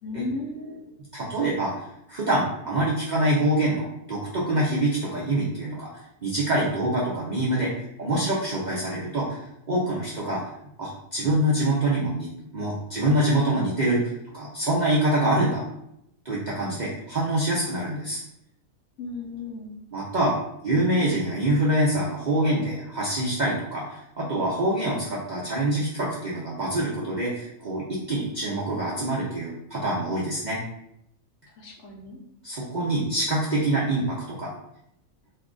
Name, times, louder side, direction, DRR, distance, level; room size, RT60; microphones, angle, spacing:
voice 1, 0.0-0.9 19.0-19.7 31.5-32.2, left 3 dB, 65° left, -1 dB, 1.0 m, -35 dB
voice 2, 1.1-1.7 2.1-5.9 6.2-7.7 8.0-9.4 9.7-10.4 10.8-15.6 16.2-18.2 19.9-20.4 20.6-30.6 32.4-34.5, right 1 dB, 55° right, -6 dB, 0.5 m, -25 dB
2.7 x 2.4 x 3.6 m, 0.79 s
omnidirectional pair, 1.5 m